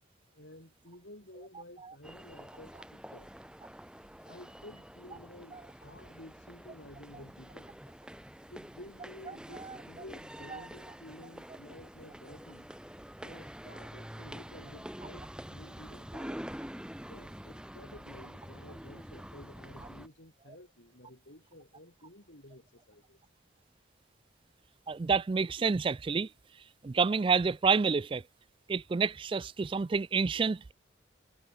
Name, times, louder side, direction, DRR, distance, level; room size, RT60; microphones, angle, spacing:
voice 1, 0.3-3.3 4.2-7.8 8.5-12.7 13.2-16.5 17.1-23.2, left 1 dB, 70° left, 7.8 m, -52 dB
sound 1, 2.0-20.1, equal, 5° right, 2.4 m, -47 dB
voice 2, 24.9-26.3 26.8-28.2 28.7-30.7, right 5 dB, 25° right, 0.3 m, -28 dB
head